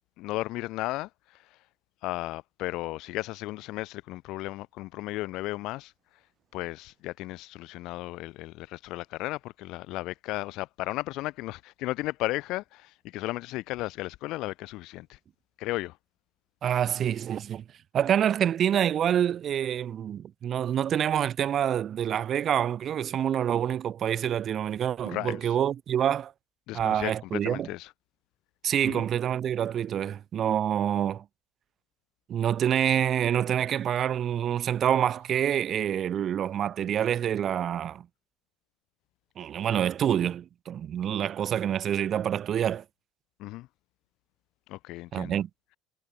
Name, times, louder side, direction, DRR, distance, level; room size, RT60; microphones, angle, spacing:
voice 1, 0.2-1.1 2.0-5.9 6.5-15.2 15.6-16.0 25.0-25.5 26.7-27.9 28.8-29.1 43.4-43.7 44.7-45.3, left 19 dB, 70° left, 0.7 m, -34 dB
voice 2, 16.6-17.6 17.9-26.3 26.7-27.7 28.6-31.2 32.3-38.1 39.4-42.8 45.1-45.5, right 9 dB, 50° right, 0.4 m, -27 dB
supercardioid pair, 85°, 0 cm